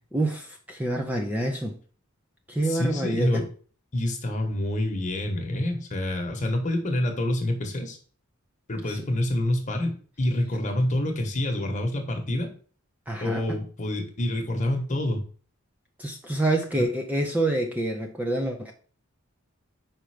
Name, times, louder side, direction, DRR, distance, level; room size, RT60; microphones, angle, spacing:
voice 1, 0.1-1.7 2.5-3.3 8.8-9.0 13.1-13.4 16.0-18.7, right 1 dB, 5° right, 0.5 m, -27 dB
voice 2, 2.6-3.5 3.9-8.0 8.7-12.5 13.2-15.2, left 1 dB, 35° left, 1.2 m, -27 dB
5.2 x 4.4 x 4.9 m
head